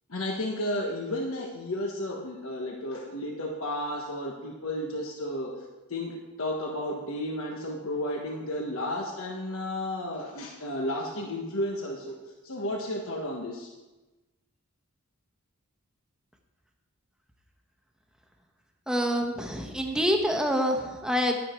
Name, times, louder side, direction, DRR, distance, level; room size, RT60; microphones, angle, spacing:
voice 1, 0.1-5.5 5.9-12.2 12.4-13.7, left 1 dB, 65° left, 1 dB, 1.3 m, -33 dB
voice 2, 18.9-21.4, equal, 5° right, 2 dB, 1.1 m, -26 dB
11.0 x 10.5 x 4.5 m, 1.1 s
head